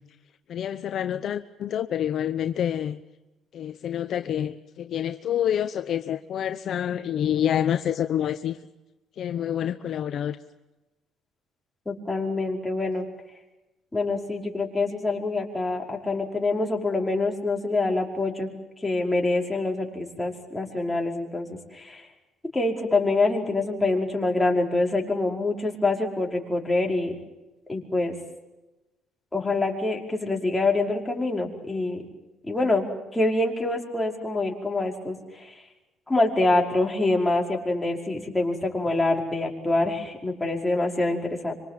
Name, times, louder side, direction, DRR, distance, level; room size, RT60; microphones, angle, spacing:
voice 1, 0.5-3.0 3.5-8.6 9.2-10.4, left 10 dB, 55° left, 1.0 m, -27 dB
voice 2, 11.9-13.0 13.9-18.5 18.8-22.0 22.5-27.1 27.7-28.1 29.3-32.0 32.4-32.9 33.1-35.5 36.1-41.5, left 2 dB, 10° left, 5.3 m, -25 dB
26.0 x 24.5 x 7.6 m
cardioid pair, 125°, 0 cm